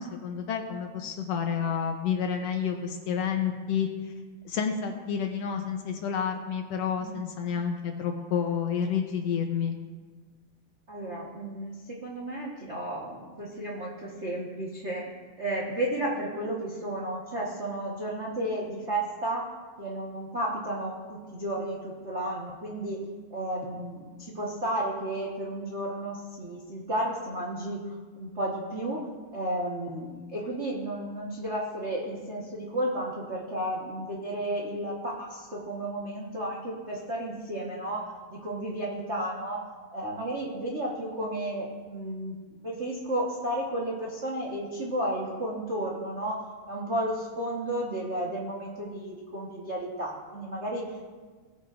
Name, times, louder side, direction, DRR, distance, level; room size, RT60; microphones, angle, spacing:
voice 1, 0.0-4.1 4.4-9.7, left 7 dB, 70° left, 4 dB, 1.7 m, -30 dB
voice 2, 10.9-15.0 15.4-19.4 19.8-23.0 23.3-27.8 28.1-29.0 29.3-39.6 39.9-42.4 42.6-46.4 46.7-50.9, right 1 dB, 55° right, -4 dB, 0.7 m, -33 dB
18.5 x 9.4 x 2.5 m, 1.4 s
omnidirectional pair, 3.4 m